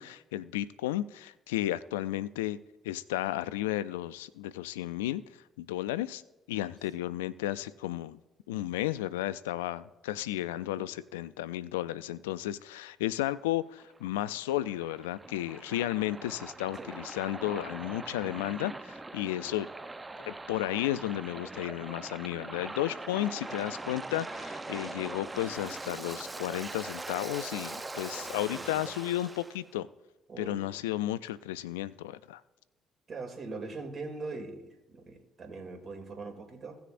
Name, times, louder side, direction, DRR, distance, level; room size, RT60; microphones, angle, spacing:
voice 1, 0.0-2.6 2.8-5.2 5.6-6.2 6.5-8.2 8.5-19.7 20.3-29.9 30.4-32.4, left 14 dB, 90° left, 17 dB, 0.3 m, -33 dB
voice 2, 10.5-10.9 16.7-16.9 28.1-28.8 30.3-30.6 33.1-36.8, right 3 dB, 45° right, 4 dB, 2.7 m, -42 dB
Waves surf, 13.8-29.6, right 2 dB, 20° right, 0.7 m, -42 dB
17.5 x 6.7 x 2.6 m, 1.0 s
hypercardioid pair, 50°, 0 cm